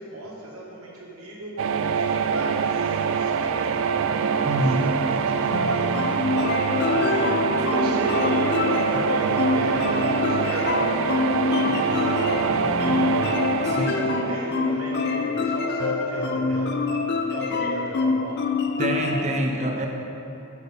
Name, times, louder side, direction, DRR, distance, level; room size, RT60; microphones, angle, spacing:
voice 1, 0.0-1.6 1.9-4.3 4.5-6.2 6.8-11.3 11.6-13.3 13.6-16.9 17.2-18.4, right 1 dB, 75° right, -4 dB, 1.8 m, -36 dB
sound 1, 1.6-15.4, right 6 dB, 60° right, 0.3 m, -25 dB
voice 2, 4.4-5.1 13.6-14.1 18.8-19.9, right 1 dB, 30° right, 2 dB, 0.8 m, -26 dB
sound 2, 5.5-19.2, left 4 dB, 50° left, 0.5 m, -26 dB
8.0 x 6.3 x 5.4 m, 2.9 s
head